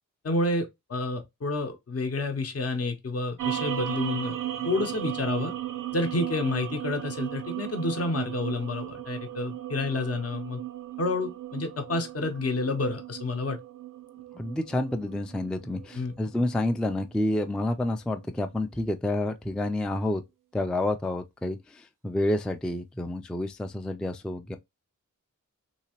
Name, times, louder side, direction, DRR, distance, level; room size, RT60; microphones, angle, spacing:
voice 1, 0.2-4.4 4.6-5.5 5.9-10.6 11.0-13.6 15.9-16.1, left 2 dB, 50° left, 0.7 m, -29 dB
sound 1, 3.4-17.9, right 12 dB, 80° right, 0.5 m, -36 dB
voice 2, 14.3-20.2 20.5-24.6, left 1 dB, 5° left, 0.3 m, -29 dB
3.2 x 2.8 x 2.9 m
wide cardioid pair, 100°, 32 cm